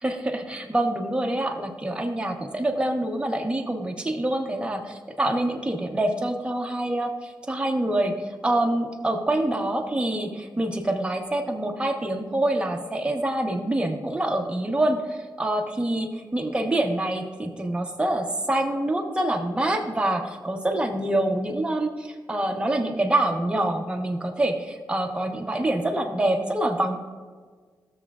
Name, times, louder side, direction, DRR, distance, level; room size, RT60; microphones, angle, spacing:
voice 1, 0.0-26.9, right 1 dB, 15° right, 1 dB, 1.1 m, -26 dB
16.0 x 7.1 x 2.5 m, 1.5 s
wide cardioid pair, 115°, 7 cm